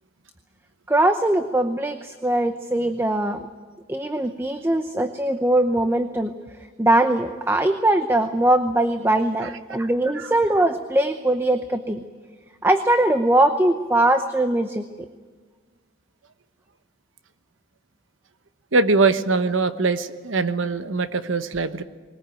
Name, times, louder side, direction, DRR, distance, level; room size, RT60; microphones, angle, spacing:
voice 1, 0.9-3.5 3.9-6.3 6.8-12.0 12.6-14.8, right 1 dB, 10° right, 8 dB, 0.7 m, -21 dB
voice 2, 18.7-21.8, right 3 dB, 75° right, 11 dB, 1.1 m, -22 dB
21.0 x 19.5 x 9.1 m, 1.5 s
head